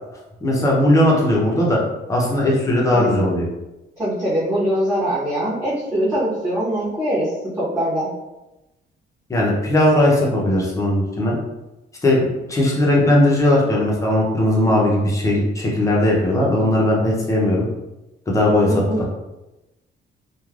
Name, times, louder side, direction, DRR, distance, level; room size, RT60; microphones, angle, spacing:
voice 1, 0.4-1.8 2.1-3.5 9.3-11.3 12.0-17.7 18.3-18.8, left 1 dB, 15° left, -3 dB, 0.6 m, -18 dB
voice 2, 2.9-3.3 4.0-7.3 7.6-8.1 18.7-19.1, equal, 10° right, -12 dB, 0.9 m, -22 dB
3.1 x 2.1 x 2.3 m, 0.98 s
cardioid pair, 180°, 20 cm